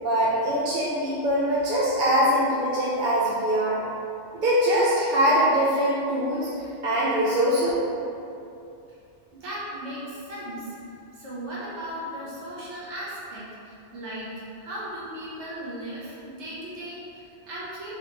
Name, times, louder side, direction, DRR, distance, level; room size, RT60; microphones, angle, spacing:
voice 1, 0.0-3.8 4.3-7.7, equal, 50° right, -8 dB, 0.7 m, -23 dB
voice 2, 9.3-10.8 11.1-17.9, right 1 dB, 70° right, -8 dB, 1.4 m, -37 dB
4.6 x 3.0 x 3.2 m, 2.6 s
omnidirectional pair, 1.2 m